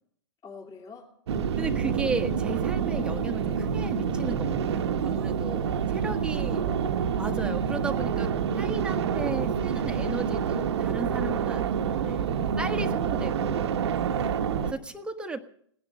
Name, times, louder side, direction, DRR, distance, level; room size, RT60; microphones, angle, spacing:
voice 1, 0.4-1.1 6.0-6.3 6.5-7.2 14.1-14.5, left 4 dB, 25° left, 2 dB, 2.8 m, -47 dB
sound 1, 1.3-14.7, right 7 dB, 65° right, 1.1 m, -27 dB
voice 2, 1.6-6.6 7.2-11.6 12.0-12.3 12.6-13.7 14.6-15.4, right 3 dB, 5° right, 5 dB, 1.2 m, -35 dB
18.0 x 10.0 x 7.4 m, 0.65 s
hypercardioid pair, 110°, 15 cm